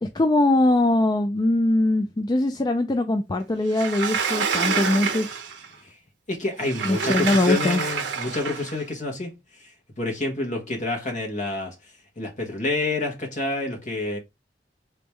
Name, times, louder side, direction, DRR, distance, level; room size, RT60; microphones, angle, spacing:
voice 1, 0.0-5.3 6.8-7.8, left 2 dB, 25° left, 0.4 m, -22 dB
Sliding door, 3.7-5.7 6.6-8.8, right 5 dB, 85° right, 0.8 m, -27 dB
voice 2, 6.3-9.4 10.0-11.7 12.2-14.2, left 2 dB, 45° left, 1.5 m, -28 dB
3.9 x 3.6 x 3.3 m
head